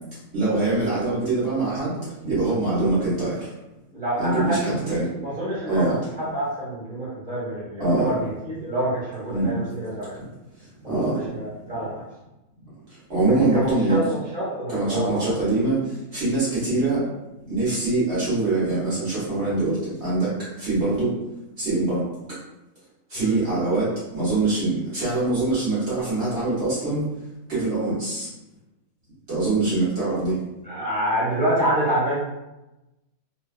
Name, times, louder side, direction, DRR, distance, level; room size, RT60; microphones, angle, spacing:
voice 1, 0.3-2.0 2.2-3.5 4.2-5.1 5.7-6.0 7.8-8.1 9.3-9.7 10.1-10.3 10.6-11.3 12.9-14.0 14.7-17.0 17.5-21.2 21.6-22.0 23.1-27.0 27.5-28.3 29.3-30.4, right 2 dB, 50° right, -10 dB, 1.1 m, -24 dB
voice 2, 3.9-8.2 8.4-10.1 10.8-12.0 13.5-15.4 23.2-23.4 30.6-32.1, right 1 dB, 5° left, -10 dB, 0.9 m, -27 dB
2.7 x 2.2 x 2.4 m, 0.98 s
omnidirectional pair, 1.6 m